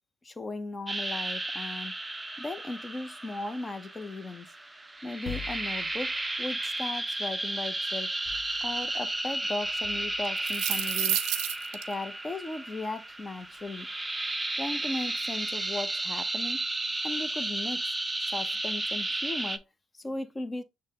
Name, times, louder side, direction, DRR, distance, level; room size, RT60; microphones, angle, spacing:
voice 1, 0.2-1.9 2.4-4.5 5.0-8.1 8.6-11.2 11.7-13.9 14.6-16.6 17.0-17.8 18.2-19.6 19.9-20.6, left 2 dB, 25° left, 0.7 m, -37 dB
sound 1, 0.9-19.6, right 2 dB, 15° right, 0.5 m, -33 dB
sound 2, 5.2-6.4 8.3-9.2 9.6-10.2, left 7 dB, 60° left, 1.1 m, -44 dB
sound 3, 10.2-11.8, right 12 dB, 80° right, 0.4 m, -29 dB
6.4 x 2.1 x 3.6 m
supercardioid pair, 70°, 0 cm